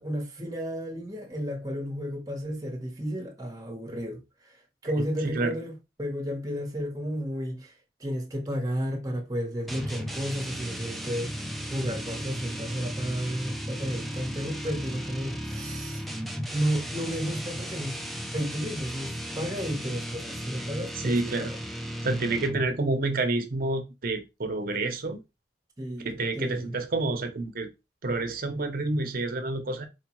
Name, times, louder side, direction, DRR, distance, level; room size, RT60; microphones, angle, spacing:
voice 1, 0.0-4.6 4.8-16.0 16.5-18.0 18.3-21.6 25.8-26.7, equal, 20° right, 0.9 m, -33 dB
voice 2, 5.2-5.5 21.0-21.5 22.0-25.2 26.0-27.7 28.0-29.9, right 2 dB, 50° right, 0.7 m, -28 dB
sound 1, 9.7-22.8, equal, ahead, 0.4 m, -35 dB
4.5 x 2.2 x 3.0 m
head